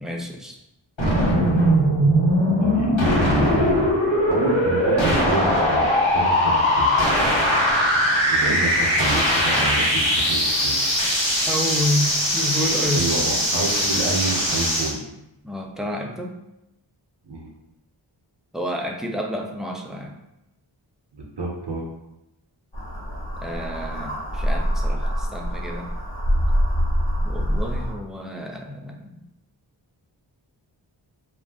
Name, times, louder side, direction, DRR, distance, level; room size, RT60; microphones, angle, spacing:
voice 1, 0.0-0.6 11.5-13.1 15.4-16.4 18.5-20.2 23.4-25.9 27.2-29.3, left 1 dB, ahead, 1 dB, 0.4 m, -29 dB
sound 1, 1.0-14.9, equal, 75° left, 1.3 m, -20 dB
voice 2, 2.6-3.8 4.3-6.9 8.3-10.8 12.9-15.0 17.2-17.5 21.1-21.9, right 2 dB, 60° right, -1 dB, 0.8 m, -28 dB
sound 2, 22.7-27.9, equal, 60° left, 1.4 m, -24 dB
2.5 x 2.2 x 3.6 m, 0.88 s
wide cardioid pair, 40°, 47 cm